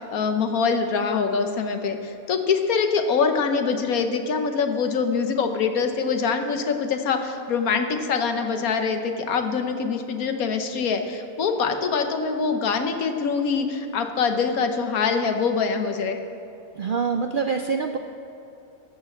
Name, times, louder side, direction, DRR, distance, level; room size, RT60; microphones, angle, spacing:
voice 1, 0.0-16.2, left 5 dB, 80° left, 6 dB, 1.4 m, -24 dB
voice 2, 16.8-18.0, right 5 dB, 65° right, 5 dB, 0.5 m, -25 dB
14.0 x 6.5 x 7.2 m, 2.9 s
omnidirectional pair, 1.5 m